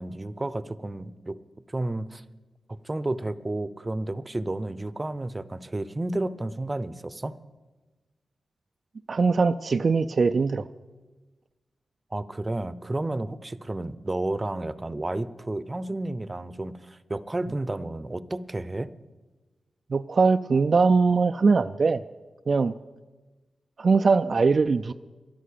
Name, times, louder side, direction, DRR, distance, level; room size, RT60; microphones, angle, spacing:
voice 1, 0.0-1.4 1.7-2.2 2.8-7.4 12.1-18.9, right 2 dB, 30° right, 17 dB, 0.7 m, -31 dB
voice 2, 9.1-10.6 19.9-22.0 22.5-22.7 23.8-24.9, right 4 dB, 60° right, 8 dB, 0.4 m, -21 dB
11.5 x 11.0 x 8.5 m, 1.2 s
cardioid pair, 50°, 0 cm